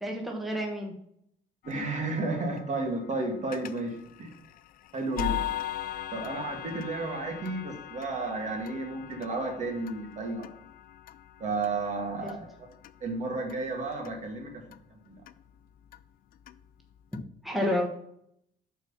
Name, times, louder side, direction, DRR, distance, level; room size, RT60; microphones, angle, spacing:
voice 1, 0.0-0.9 12.2-12.3 17.4-17.9, left 1 dB, ahead, 0 dB, 1.4 m, -30 dB
sound 1, 1.6-17.2, left 11 dB, 60° left, 0.4 m, -41 dB
voice 2, 1.6-4.3 4.9-5.5 6.1-10.5 11.4-12.5 13.0-14.5 15.1-15.2, right 2 dB, 45° right, 3 dB, 1.8 m, -32 dB
6.4 x 4.7 x 5.4 m, 0.71 s
cardioid pair, 110°, 17 cm